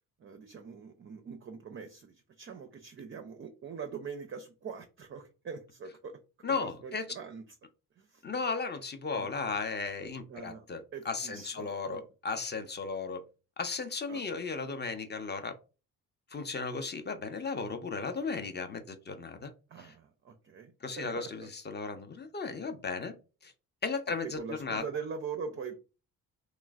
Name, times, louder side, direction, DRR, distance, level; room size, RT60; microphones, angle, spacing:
voice 1, 0.2-6.2 6.5-7.4 8.0-8.2 9.1-9.3 10.3-10.7 10.9-12.0 14.1-14.6 19.7-21.5 24.2-25.8, right 6 dB, 30° right, 6 dB, 0.4 m, -43 dB
voice 2, 6.4-7.1 8.2-13.2 13.6-15.5 16.3-19.5 19.8-19.9 20.8-23.1 23.4-23.5 23.8-24.8, left 4 dB, 25° left, 7 dB, 0.5 m, -35 dB
3.0 x 2.0 x 2.3 m, 0.31 s
hypercardioid pair, 45°, 47 cm